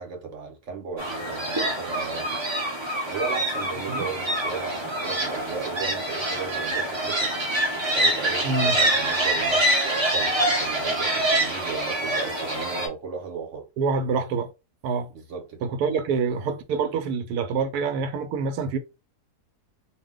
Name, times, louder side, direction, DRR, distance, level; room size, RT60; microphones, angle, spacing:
voice 1, 0.0-2.4 3.1-7.3 7.9-13.6 15.1-15.7, right 5 dB, 55° right, 1.0 m, -35 dB
sound 1, 1.0-12.9, right 1 dB, 35° right, 0.4 m, -25 dB
voice 2, 8.4-8.7 13.8-14.5 14.8-15.1 15.6-18.8, right 4 dB, 80° right, 1.1 m, -26 dB
2.6 x 2.2 x 3.6 m
omnidirectional pair, 1.7 m